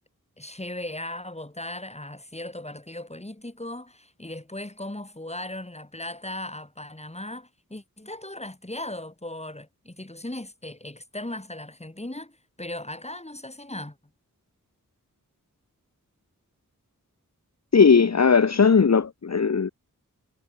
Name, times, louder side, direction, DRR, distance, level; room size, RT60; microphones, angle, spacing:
voice 1, 0.4-14.0, left 1 dB, 20° left, 3.3 m, -37 dB
voice 2, 17.7-19.7, left 5 dB, 50° left, 1.0 m, -18 dB
cardioid pair, 45°, 33 cm